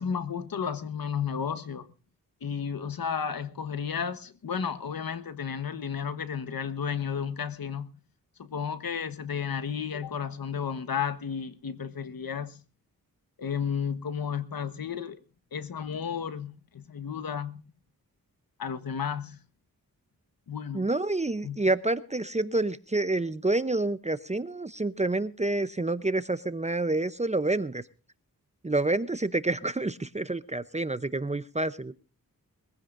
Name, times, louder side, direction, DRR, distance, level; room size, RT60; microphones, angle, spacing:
voice 1, 0.0-1.9 2.4-8.0 8.4-12.6 13.4-15.2 15.5-17.6 18.6-19.4 20.5-20.9 21.4-21.6, left 7 dB, 90° left, 1.4 m, -33 dB
voice 2, 20.7-27.8 28.6-31.9, right 2 dB, 20° right, 0.7 m, -28 dB
22.0 x 15.5 x 2.6 m
wide cardioid pair, 90°, 34 cm